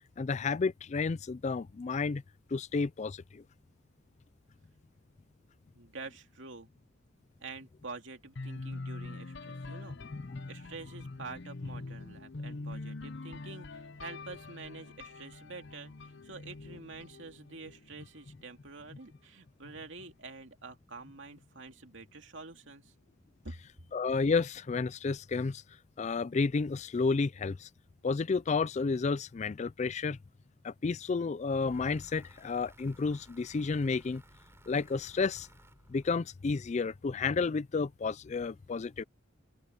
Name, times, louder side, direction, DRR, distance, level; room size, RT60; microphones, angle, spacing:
voice 1, 0.2-2.2 2.5-3.4 10.1-10.4 23.9-25.6 26.0-27.7 28.0-30.2 30.6-34.2 34.7-35.5 35.9-39.0, left 4 dB, 35° left, 0.4 m, -31 dB
voice 2, 5.7-6.7 7.4-10.0 10.5-22.9 23.4-23.6, right 3 dB, 65° right, 2.8 m, -47 dB
sound 1, 8.4-18.2, left 3 dB, 60° left, 0.8 m, -44 dB
sound 2, 31.7-36.6, right 1 dB, 15° right, 3.9 m, -59 dB
open air
head